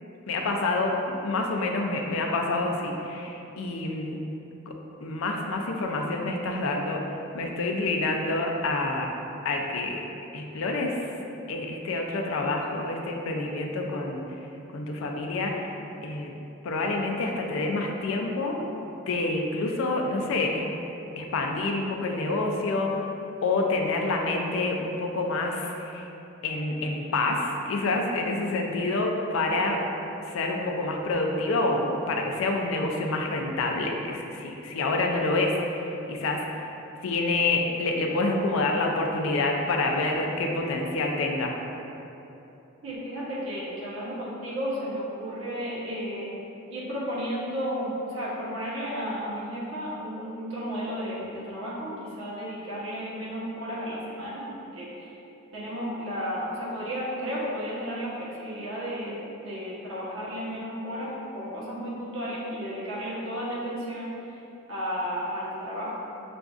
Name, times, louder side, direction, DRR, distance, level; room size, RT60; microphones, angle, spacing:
voice 1, 0.3-4.2 4.7-4.8 5.0-7.0 7.3-9.1 9.4-10.0 10.3-11.1 11.5-14.2 14.7-15.5 16.0-16.3 16.6-18.6 19.1-20.7 21.2-23.1 23.4-26.1 26.4-29.8 30.2-36.6 37.0-41.5, left 2 dB, 75° left, 1 dB, 0.4 m, -27 dB
voice 2, 42.8-46.4 46.7-55.1 55.5-64.4 64.7-65.9, equal, 70° right, -8 dB, 1.0 m, -33 dB
5.8 x 2.5 x 2.3 m, 2.9 s
head